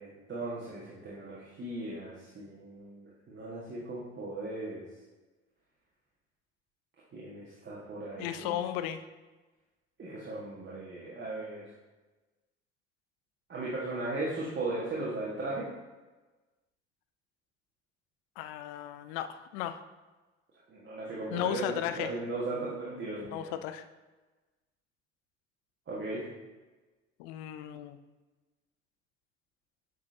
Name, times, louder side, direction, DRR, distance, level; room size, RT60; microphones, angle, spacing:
voice 1, 0.0-4.8 7.1-8.5 10.0-11.6 13.5-15.7 20.7-23.5 25.9-26.2, right 2 dB, 30° right, -6 dB, 1.6 m, -37 dB
voice 2, 8.2-9.0 18.4-19.8 21.3-22.1 23.3-23.8 27.2-28.0, left 11 dB, 55° left, 10 dB, 0.6 m, -35 dB
9.1 x 5.1 x 2.7 m, 1.2 s
figure-of-eight pair, 55°, 35 cm